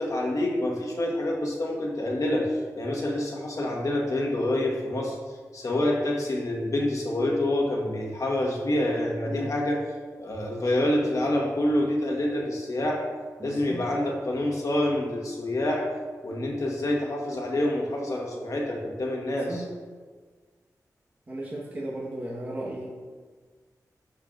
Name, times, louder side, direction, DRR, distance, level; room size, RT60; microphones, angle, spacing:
voice 1, 0.0-5.2 5.5-9.8 10.1-13.1 13.4-15.9 16.2-19.5, left 1 dB, 60° left, -1 dB, 1.4 m, -27 dB
voice 2, 13.4-13.8 19.4-19.7 21.3-22.9, right 1 dB, 30° right, -5 dB, 1.3 m, -35 dB
13.0 x 4.8 x 2.5 m, 1.5 s
wide cardioid pair, 95°, 6 cm